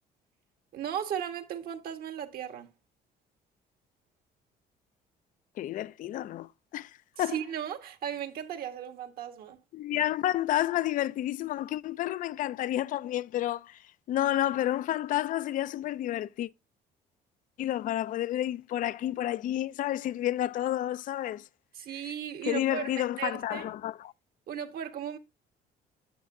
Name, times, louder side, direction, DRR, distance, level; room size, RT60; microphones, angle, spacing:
voice 1, 0.7-2.7 7.2-9.6 21.7-23.7 24.5-25.2, right 9 dB, 65° right, 1.4 m, -36 dB
voice 2, 5.6-6.9 7.2-7.4 9.7-13.8 14.1-16.5 17.6-21.4 22.4-24.1, left 13 dB, 50° left, 0.4 m, -30 dB
8.5 x 6.9 x 2.7 m
cardioid pair, 110°, 17 cm